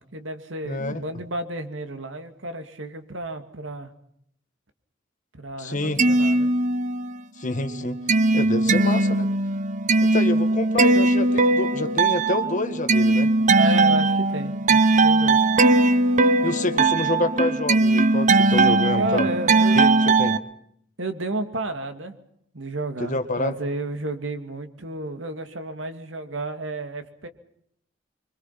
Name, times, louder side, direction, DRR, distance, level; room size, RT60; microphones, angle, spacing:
voice 1, 0.1-3.9 5.3-6.5 8.5-9.1 13.5-15.4 19.0-20.0 21.0-22.2 22.5-27.3, right 2 dB, 85° right, 8 dB, 2.4 m, -32 dB
voice 2, 0.6-1.0 5.6-6.0 7.4-8.0 8.3-9.3 10.0-13.3 16.4-19.3 19.7-20.4 23.0-23.5, left 2 dB, 40° left, 9 dB, 1.8 m, -27 dB
sound 1, 5.8-7.2 7.5-20.4, right 2 dB, 40° right, 0.9 m, -19 dB
25.5 x 24.0 x 5.9 m, 0.71 s
head